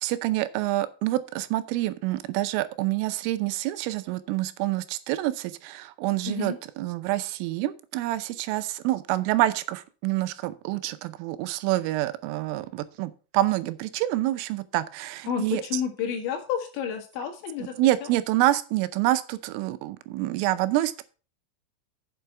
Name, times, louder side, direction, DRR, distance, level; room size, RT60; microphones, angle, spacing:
voice 1, 0.0-15.8 17.6-21.0, right 16 dB, 85° right, 12 dB, 3.2 m, -27 dB
voice 2, 6.3-6.6 15.3-18.1, left 7 dB, 70° left, 3 dB, 3.9 m, -31 dB
7.8 x 6.8 x 5.9 m, 0.36 s
omnidirectional pair, 5.8 m